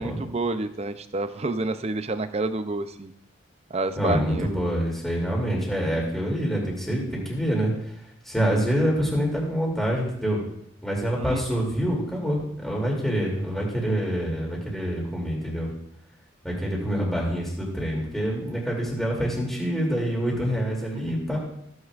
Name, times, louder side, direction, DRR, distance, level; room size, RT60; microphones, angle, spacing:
voice 1, 0.0-3.1 3.7-4.5 11.2-11.6, right 2 dB, 30° right, 11 dB, 0.5 m, -29 dB
voice 2, 4.0-7.7 8.2-10.4 10.8-15.7 16.4-21.4, equal, ahead, -3 dB, 2.8 m, -26 dB
15.5 x 9.5 x 2.5 m, 0.75 s
head